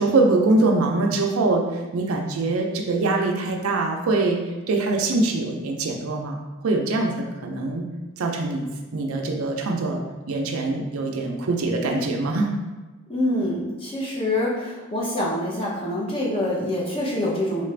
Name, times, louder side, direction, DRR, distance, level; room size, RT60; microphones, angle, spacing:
voice 1, 0.0-4.4 4.7-7.8 8.2-8.6 8.9-10.0 10.3-12.5, right 2 dB, 75° right, 2 dB, 0.5 m, -23 dB
voice 2, 13.1-17.6, left 1 dB, 25° left, -4 dB, 0.7 m, -25 dB
3.7 x 2.4 x 3.2 m, 1.2 s
head